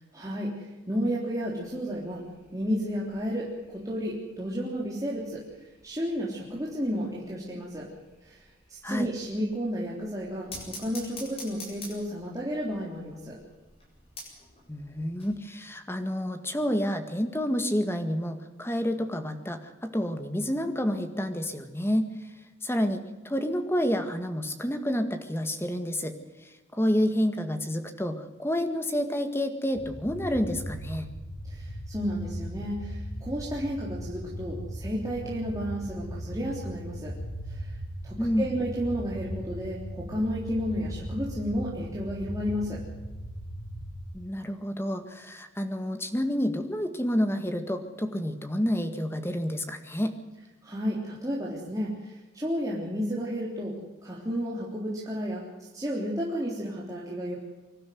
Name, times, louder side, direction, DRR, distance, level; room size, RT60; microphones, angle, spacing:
voice 1, 0.1-2.2 2.5-5.4 5.8-7.9 8.2-8.4 8.7-13.4 31.4-37.1 37.5-37.8 38.0-42.8 50.6-53.7 54.0-57.3, equal, 15° right, -5 dB, 3.6 m, -32 dB
sound 1, 1.4-15.4, left 2 dB, 30° left, 7.5 m, -49 dB
voice 2, 14.7-22.1 22.6-26.1 26.7-31.1 38.2-38.5 44.1-50.1, equal, 10° left, 7 dB, 1.9 m, -29 dB
sound 2, 29.7-44.0, equal, 50° left, 6.8 m, -38 dB
25.5 x 12.5 x 9.4 m, 1.2 s
head